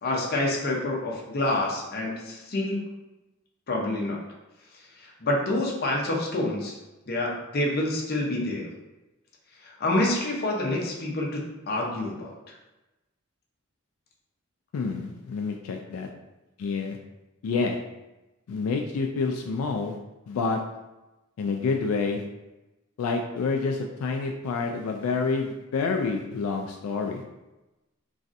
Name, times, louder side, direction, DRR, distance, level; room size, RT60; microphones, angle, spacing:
voice 1, 0.0-2.8 3.7-4.2 5.0-6.8 7.1-8.7 9.6-12.3, left 1 dB, 50° left, -1 dB, 0.6 m, -27 dB
voice 2, 14.7-16.1 16.6-17.0 17.4-17.8 18.5-20.0 20.3-20.6 21.4-22.2 23.0-27.2, left 4 dB, 90° left, 3 dB, 0.3 m, -28 dB
3.1 x 2.6 x 2.5 m, 1.0 s
head